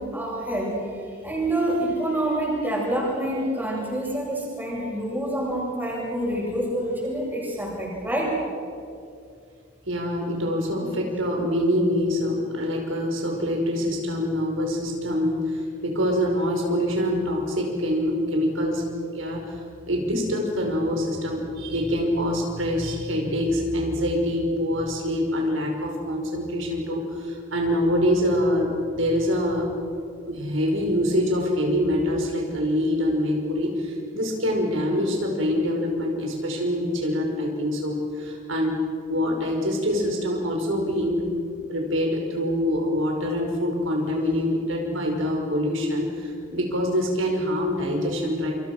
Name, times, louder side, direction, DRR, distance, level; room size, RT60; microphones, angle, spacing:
voice 1, 0.0-8.3 10.8-10.9 41.0-41.3, right 1 dB, 10° right, -3 dB, 7.8 m, -27 dB
voice 2, 9.9-18.9 19.1-19.6 19.9-29.7 30.3-38.8 39.1-41.2 41.7-48.5, equal, 75° right, 1 dB, 5.6 m, -25 dB
28.5 x 27.0 x 6.3 m, 2.4 s
head